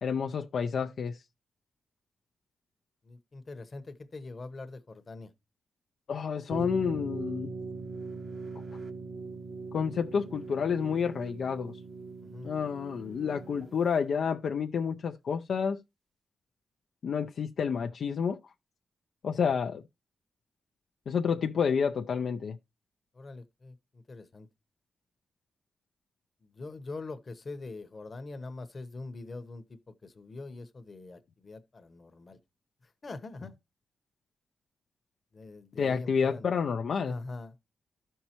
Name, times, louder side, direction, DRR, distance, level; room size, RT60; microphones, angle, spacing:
voice 1, 0.0-1.2 6.1-7.5 9.7-11.8 12.4-15.8 17.0-18.4 19.2-19.8 21.1-22.6 35.8-37.2, left 6 dB, 70° left, 0.5 m, -29 dB
voice 2, 3.0-5.3 12.2-12.5 23.1-24.5 26.4-32.4 32.8-33.6 35.3-36.5 37.0-37.5, left 3 dB, 40° left, 1.0 m, -43 dB
sound 1, 6.5-14.0, right 4 dB, 40° right, 0.9 m, -41 dB
13.5 x 5.6 x 2.9 m
cardioid pair, 95°, 0 cm